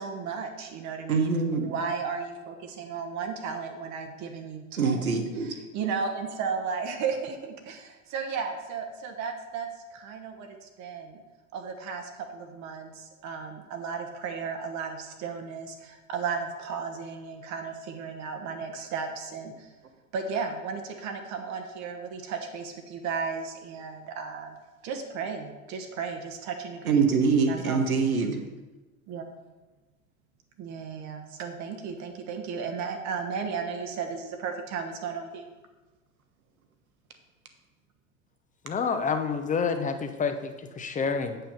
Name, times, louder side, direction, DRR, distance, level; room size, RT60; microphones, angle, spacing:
voice 1, 0.0-1.3 1.6-5.1 5.4-11.2 11.5-19.7 20.1-24.5 24.8-27.0 27.5-27.8 29.1-29.2 30.6-35.4, right 5 dB, 40° right, 4 dB, 1.2 m, -34 dB
voice 2, 1.1-1.7 4.8-5.5 26.9-28.4, right 5 dB, 80° right, 5 dB, 1.3 m, -24 dB
voice 3, 38.6-41.4, left 5 dB, 20° left, 7 dB, 0.9 m, -28 dB
8.5 x 5.7 x 5.5 m, 1.2 s
figure-of-eight pair, 80°, 42 cm